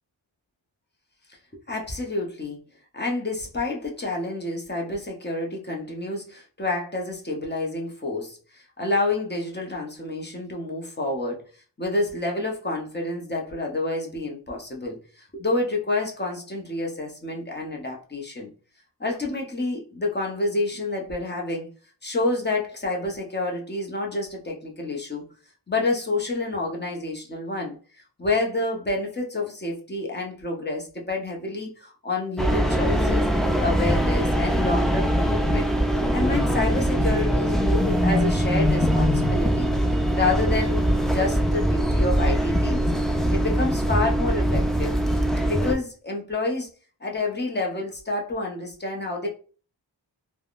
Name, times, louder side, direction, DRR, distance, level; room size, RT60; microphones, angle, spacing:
voice 1, 1.7-2.6 2.9-11.4 11.8-18.5 19.0-21.7 22.0-25.3 25.7-27.8 28.2-33.3 33.6-35.7 36.1-42.9 43.3-44.9 45.4-46.7 47.0-49.3, left 2 dB, 20° left, 0 dB, 0.7 m, -28 dB
sound 1, 32.4-45.8, equal, ahead, 0.3 m, -22 dB
3.4 x 2.2 x 2.4 m, 0.38 s
wide cardioid pair, 80°, 47 cm